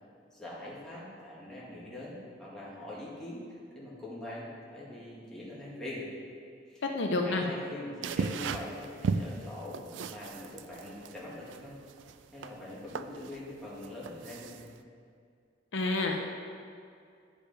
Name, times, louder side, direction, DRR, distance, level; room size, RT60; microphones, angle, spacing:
voice 1, 0.3-6.0 6.7-6.8 7.2-11.7 12.3-14.6, left 1 dB, 5° left, -8 dB, 2.0 m, -43 dB
voice 2, 6.9-7.4 15.7-16.3, left 2 dB, 65° left, 2 dB, 0.6 m, -29 dB
sound 1, 8.0-14.8, right 5 dB, 70° right, 0.3 m, -37 dB
10.0 x 5.0 x 5.0 m, 2.3 s
head